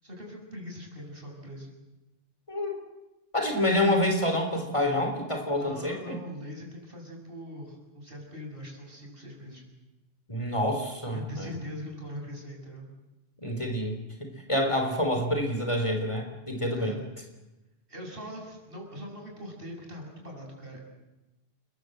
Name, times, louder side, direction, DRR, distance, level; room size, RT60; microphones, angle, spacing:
voice 1, 0.0-1.7 5.5-9.6 11.1-12.9 16.7-17.0 17.9-20.8, equal, 55° right, 1 dB, 7.1 m, -41 dB
voice 2, 2.5-2.8 3.3-6.2 10.3-11.5 13.4-17.0, left 1 dB, 25° left, 3 dB, 3.6 m, -27 dB
29.0 x 22.5 x 7.9 m, 1.0 s
omnidirectional pair, 1.1 m